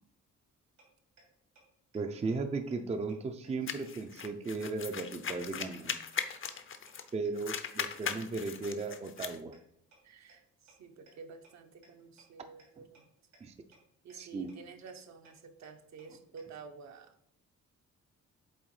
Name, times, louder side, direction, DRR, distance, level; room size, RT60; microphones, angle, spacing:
sound 1, 0.8-0.9 1.2-1.3 1.5-1.6 1.9-2.0 2.3-2.4 2.7-2.8 3.1-3.2 3.4-3.5 3.8-3.9 4.2-4.3 4.6-4.7 5.0-5.1 5.4-5.5 5.7-5.8 6.1-6.2 6.5-6.6 6.9-7.0 7.2-7.3 7.6-7.7 8.0-8.1 8.4-8.5 8.8-8.9 9.2-9.3 9.5-9.6 9.9-10.0 10.3-10.4 10.7-10.8 11.1-11.2 11.4-11.5 11.8-11.9 12.2-12.3 12.6-12.7 12.9-13.0 13.3-13.4 13.7-13.8 14.1-14.2 14.5-14.6 14.9-15.0 15.2-15.3 15.6-15.7 16.0-16.1 16.4-16.5, right 3 dB, 85° right, 3.1 m, -60 dB
voice 1, 1.9-6.0 7.1-9.6 13.4-13.5 14.1-14.5, right 3 dB, 20° right, 8 dB, 0.5 m, -36 dB
sound 2, 3.7-7.1 7.4-9.4, left 7 dB, 45° left, 0.7 m, -39 dB
voice 2, 10.0-13.1 14.0-17.1, right 5 dB, 65° right, 6 dB, 0.9 m, -51 dB
8.1 x 3.6 x 4.8 m, 0.72 s
cardioid pair, 120°, 29 cm